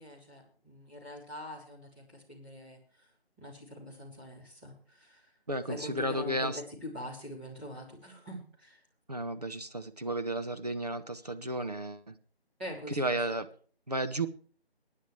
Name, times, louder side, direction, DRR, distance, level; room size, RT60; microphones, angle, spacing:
voice 1, 0.0-3.1 3.4-5.3 5.7-8.8 12.6-13.2, left 1 dB, 10° right, -8 dB, 3.4 m, -44 dB
voice 2, 5.5-6.6 9.1-12.1 13.0-13.5 13.9-14.3, right 1 dB, 40° right, 9 dB, 1.0 m, -33 dB
22.5 x 10.5 x 3.2 m, 0.44 s
figure-of-eight pair, 175°, 32 cm